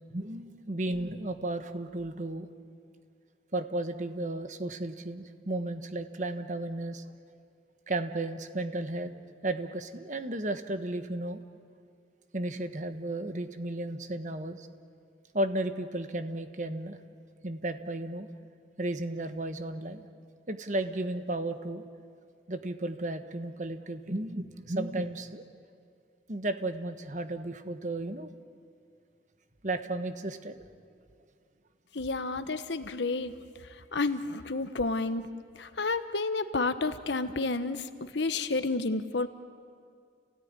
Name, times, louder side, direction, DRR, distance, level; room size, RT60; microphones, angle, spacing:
voice 1, 0.1-2.5 3.5-7.0 7.9-9.1 9.4-11.4 12.3-14.7 15.3-17.0 17.4-18.3 18.8-20.1 20.5-21.8 22.5-25.4 26.3-28.3 29.6-30.6, right 2 dB, 40° right, 9 dB, 1.2 m, -34 dB
voice 2, 31.9-35.3 35.5-39.3, left 3 dB, 70° left, 10 dB, 1.1 m, -31 dB
29.5 x 17.5 x 9.7 m, 2.3 s
head